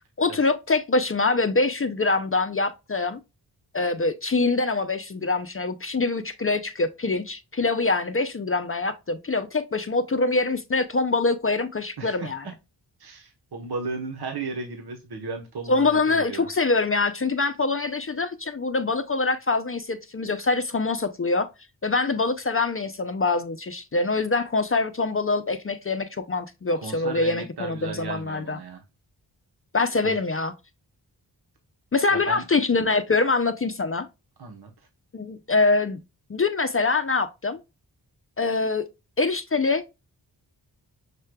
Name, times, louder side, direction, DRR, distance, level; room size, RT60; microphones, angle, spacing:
voice 1, 0.2-3.2 3.7-12.4 15.7-21.5 21.8-28.6 29.7-30.5 31.9-34.1 35.1-36.0 36.3-37.6 38.4-38.8 39.2-39.8, left 3 dB, 30° left, 0.6 m, -24 dB
voice 2, 12.0-12.5 13.0-16.5 26.8-28.8 30.0-30.2 32.1-32.5 34.4-34.7, right 4 dB, 60° right, 1.1 m, -35 dB
6.6 x 3.2 x 2.2 m
cardioid pair, 45°, 44 cm